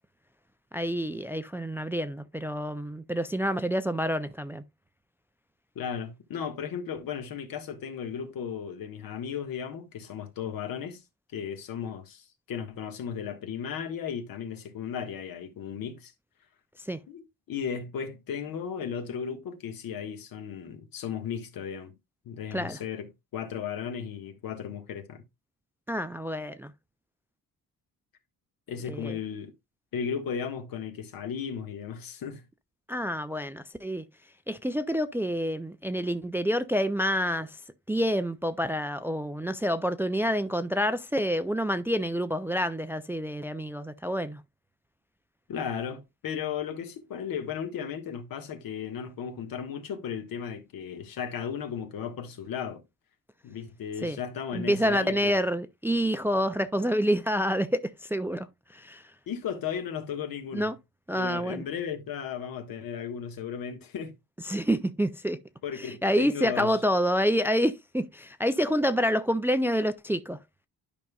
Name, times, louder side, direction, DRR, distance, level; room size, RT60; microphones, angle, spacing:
voice 1, 0.7-4.6 16.8-17.0 22.5-22.8 25.9-26.7 28.8-29.2 32.9-34.0 34.5-37.6 37.9-44.4 54.0-54.2 54.5-59.0 60.5-60.7 61.1-61.6 64.5-65.4 65.8-70.4, equal, 5° right, 0.3 m, -28 dB
voice 2, 5.7-11.0 11.3-16.1 17.1-17.2 17.5-21.9 22.2-25.2 28.7-29.5 29.9-32.4 45.5-52.8 53.4-55.4 59.3-60.7 61.2-64.1 65.6-66.8, left 7 dB, 85° left, 1.5 m, -35 dB
12.0 x 5.3 x 2.3 m
cardioid pair, 150°, 34 cm